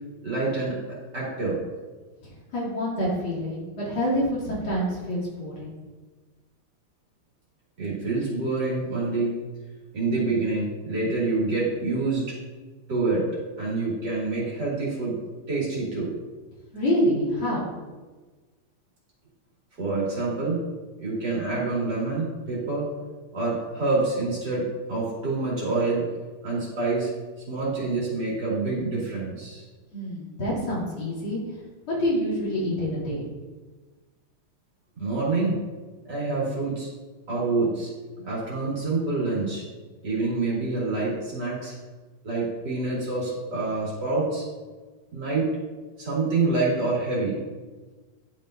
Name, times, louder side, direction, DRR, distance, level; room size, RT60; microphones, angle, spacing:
voice 1, 0.2-0.8 1.1-1.6 7.8-9.4 9.9-12.3 12.9-13.2 13.6-15.1 15.5-16.1 19.8-20.6 21.0-22.9 23.3-24.6 24.9-26.1 26.4-27.1 27.5-29.6 35.0-35.6 36.0-36.9 37.3-37.9 38.2-39.6 40.0-41.7 42.2-44.4 45.1-45.5 46.0-47.4, right 3 dB, 50° right, -6 dB, 2.9 m, -26 dB
voice 2, 2.5-5.7 16.7-17.7 29.9-31.4 31.9-33.3, equal, 70° left, -8 dB, 3.5 m, -27 dB
11.0 x 5.4 x 2.5 m, 1.3 s
omnidirectional pair, 2.4 m